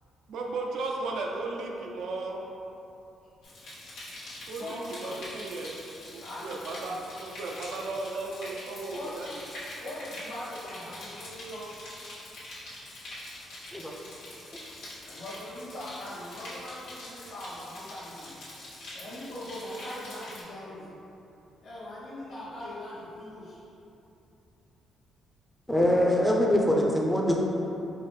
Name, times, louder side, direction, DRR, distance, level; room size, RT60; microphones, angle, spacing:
voice 1, 0.3-2.4 4.5-5.8 6.1-9.3, right 3 dB, 75° right, 0 dB, 0.4 m, -35 dB
sound 1, 3.4-20.4, left 1 dB, 90° left, 1.1 m, -44 dB
voice 2, 4.6-5.2 6.2-7.0 8.9-9.1 9.8-11.7 15.0-18.5 18.9-20.9 21.6-23.6, left 1 dB, 65° left, -10 dB, 0.9 m, -41 dB
voice 3, 25.7-27.4, equal, 5° left, -2 dB, 0.6 m, -23 dB
4.5 x 2.5 x 3.3 m, 2.9 s
cardioid pair, 90°, 0 cm